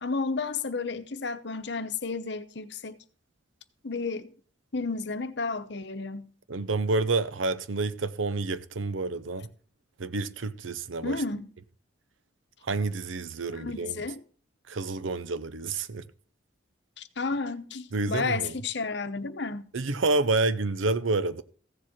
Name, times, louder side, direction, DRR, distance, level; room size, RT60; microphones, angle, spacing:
voice 1, 0.0-3.0 3.8-4.3 4.7-6.3 11.0-11.5 13.5-14.2 17.0-19.7, left 4 dB, 60° left, 0.9 m, -32 dB
voice 2, 6.5-9.5 10.0-11.2 12.6-14.0 14.7-16.1 17.9-18.6 19.7-21.4, right 3 dB, 80° right, 0.7 m, -29 dB
15.0 x 7.5 x 4.4 m
head